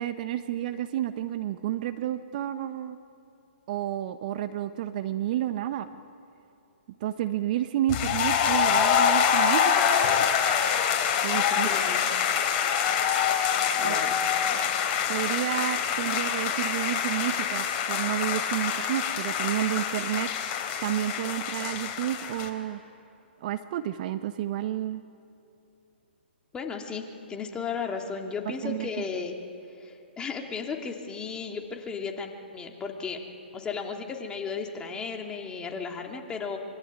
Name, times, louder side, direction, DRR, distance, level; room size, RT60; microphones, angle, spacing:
voice 1, 0.0-3.0 3.7-5.9 7.0-10.3 11.2-11.7 13.8-14.1 15.1-20.3 20.8-22.8 23.4-25.0 28.6-28.9, right 12 dB, 45° right, 11 dB, 1.1 m, -30 dB
sound 1, 7.9-22.5, left 8 dB, 35° left, 3.6 m, -25 dB
voice 2, 11.3-12.0 13.7-14.7 26.5-29.4 29.8-33.2 33.5-36.6, left 5 dB, 15° left, 2 dB, 2.8 m, -35 dB
25.0 x 24.5 x 9.7 m, 2.7 s
hypercardioid pair, 135°, 6 cm